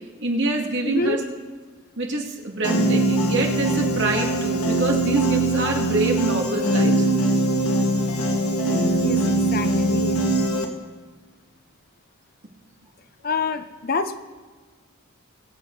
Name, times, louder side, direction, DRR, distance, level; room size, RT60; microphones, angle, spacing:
voice 1, 0.2-1.2 2.0-7.1, right 2 dB, 55° right, 0 dB, 2.2 m, -25 dB
voice 2, 0.8-1.2 9.0-10.2 13.2-14.2, left 4 dB, 45° left, 9 dB, 0.7 m, -27 dB
Piano, 2.6-10.6, right 1 dB, 90° left, 1.7 m, -22 dB
22.0 x 8.0 x 4.0 m, 1.5 s
head